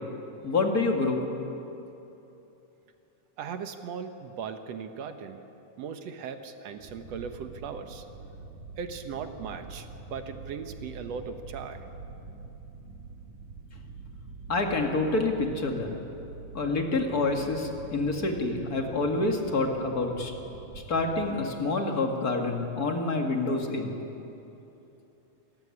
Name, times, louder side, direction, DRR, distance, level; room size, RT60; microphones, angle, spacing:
voice 1, 0.4-1.3 14.5-16.0 16.5-20.3 20.9-23.9, left 3 dB, 35° left, 2 dB, 2.1 m, -27 dB
voice 2, 3.4-5.4 5.8-8.1 8.8-11.9, right 6 dB, 65° right, 7 dB, 2.1 m, -38 dB
sound 1, 6.8-21.4, right 4 dB, 85° right, 3.6 m, -45 dB
26.5 x 14.5 x 9.8 m, 3.0 s
omnidirectional pair, 3.6 m